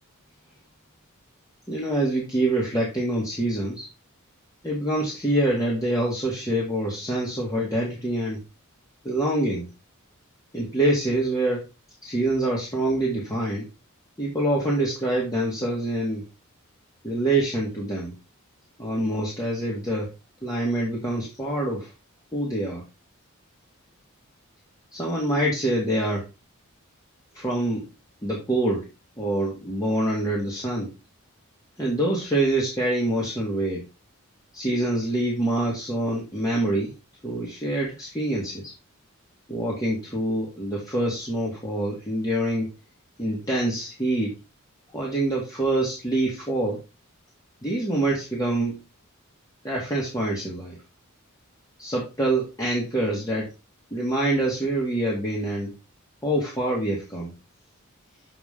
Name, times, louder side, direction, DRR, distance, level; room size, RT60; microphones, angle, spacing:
voice 1, 1.7-3.9 4.6-8.4 9.0-9.7 10.5-11.6 12.0-13.7 14.2-16.2 17.0-18.2 18.8-20.1 20.4-21.9 22.3-22.8 24.9-26.2 27.3-27.9 28.2-28.9 29.2-30.9 31.8-33.9 34.5-36.9 37.2-38.7 39.5-42.7 43.2-44.3 44.9-46.8 47.6-48.8 49.6-50.8 51.8-53.5 53.9-55.7 56.2-57.3, right 1 dB, 15° left, -4 dB, 1.8 m, -25 dB
7.2 x 5.1 x 3.7 m, 0.28 s
head